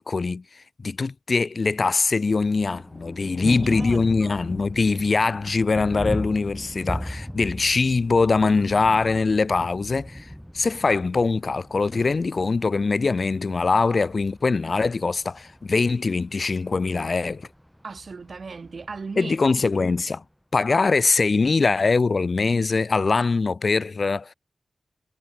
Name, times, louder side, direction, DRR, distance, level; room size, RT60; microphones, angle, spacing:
voice 1, 0.0-10.3 10.5-17.5 19.2-20.2 20.5-24.3, left 4 dB, 50° left, 0.5 m, -22 dB
Thunder, 2.2-20.2, equal, ahead, 1.9 m, -38 dB
voice 2, 3.7-4.4 17.8-19.4, right 4 dB, 55° right, 7.2 m, -37 dB
wide cardioid pair, 80°, 0 cm